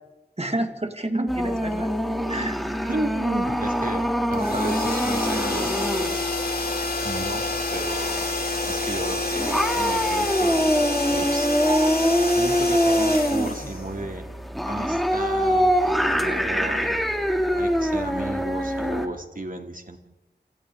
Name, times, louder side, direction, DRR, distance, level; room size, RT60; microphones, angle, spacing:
voice 1, 0.4-1.9 2.3-2.6 6.2-6.4 11.6-11.9, right 1 dB, 35° right, 6 dB, 2.2 m, -29 dB
sound 1, 1.3-19.1, equal, ahead, 2.9 m, -25 dB
voice 2, 2.9-5.7 7.0-8.2 8.7-11.5 12.3-14.3 14.6-17.0 17.6-20.0, right 2 dB, 50° right, 4 dB, 2.8 m, -33 dB
sound 2, 4.3-14.3, left 2 dB, 60° left, 3.4 m, -28 dB
28.0 x 27.0 x 3.9 m, 0.96 s
wide cardioid pair, 45°, 17 cm